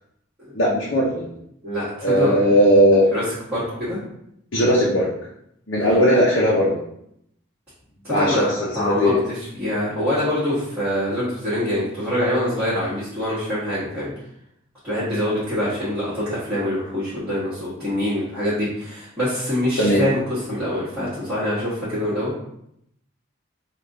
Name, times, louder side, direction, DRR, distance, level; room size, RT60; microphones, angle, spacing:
voice 1, 0.5-1.3 2.0-3.1 4.5-5.1 5.7-6.8 8.1-9.2 19.8-20.0, equal, 65° left, -6 dB, 0.7 m, -18 dB
voice 2, 1.6-2.4 3.1-3.2 3.5-4.0 5.7-6.0 8.0-14.1 14.8-22.3, equal, 10° right, -16 dB, 1.5 m, -25 dB
3.4 x 2.5 x 3.8 m, 0.76 s
head